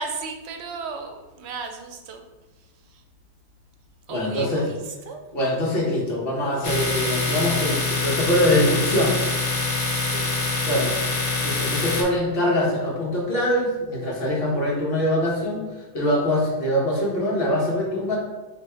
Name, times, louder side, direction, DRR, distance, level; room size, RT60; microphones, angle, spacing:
voice 1, 0.0-2.2 2.9-3.0 4.1-5.2 10.0-10.3 10.8-10.9 11.1-11.9, right 4 dB, 85° right, 5 dB, 0.8 m, -35 dB
voice 2, 4.1-4.7 5.3-9.2 10.7-10.9 11.4-15.7 15.9-18.2, left 1 dB, 65° left, -3 dB, 1.2 m, -23 dB
Domestic sounds home sounds, 6.6-12.0, left 3 dB, 35° left, 0.6 m, -25 dB
3.4 x 2.8 x 4.3 m, 1.2 s
omnidirectional pair, 1.1 m